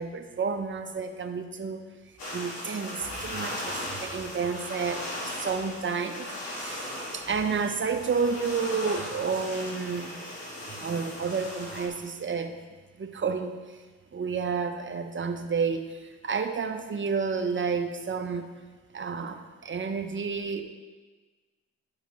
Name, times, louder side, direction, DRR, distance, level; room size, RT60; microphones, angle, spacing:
voice 1, 0.0-1.8 2.3-10.2 10.8-12.6 13.0-13.6 14.1-18.5 18.9-20.6, right 5 dB, 35° right, 6 dB, 1.0 m, -30 dB
sound 1, 2.2-11.9, left 1 dB, 80° left, 2.6 m, -38 dB
12.5 x 5.0 x 3.1 m, 1.3 s
supercardioid pair, 60°, 33 cm